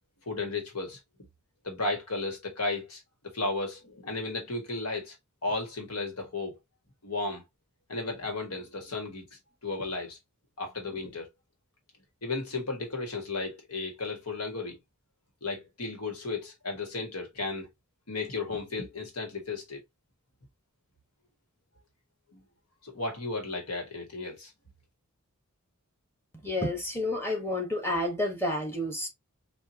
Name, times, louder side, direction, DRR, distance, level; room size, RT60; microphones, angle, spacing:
voice 1, 0.2-1.0 1.6-3.0 3.3-5.1 5.4-6.6 7.0-7.4 7.9-9.3 9.6-10.2 10.6-11.3 12.2-14.8 15.4-17.7 18.1-19.8 22.3-22.4 22.8-24.5, left 3 dB, 85° left, 1.6 m, -34 dB
voice 2, 26.4-29.1, left 1 dB, 10° left, 1.2 m, -30 dB
4.6 x 2.6 x 2.8 m
head